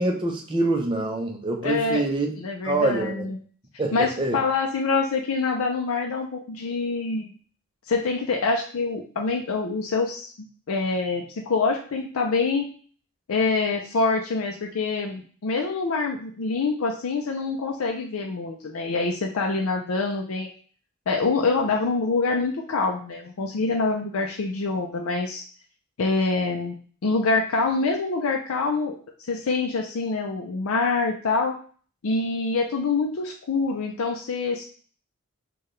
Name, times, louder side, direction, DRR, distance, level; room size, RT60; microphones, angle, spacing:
voice 1, 0.0-2.3 2.6-3.3 3.8-4.4, right 2 dB, 25° right, 2 dB, 0.6 m, -25 dB
voice 2, 1.6-2.1 2.4-3.4 3.9-7.3 7.9-10.3 10.7-12.7 13.3-20.5 21.1-25.4 26.0-26.7 27.0-28.9 29.2-31.5 32.0-34.7, left 3 dB, 80° left, 2 dB, 0.5 m, -25 dB
4.6 x 2.3 x 3.1 m, 0.43 s
head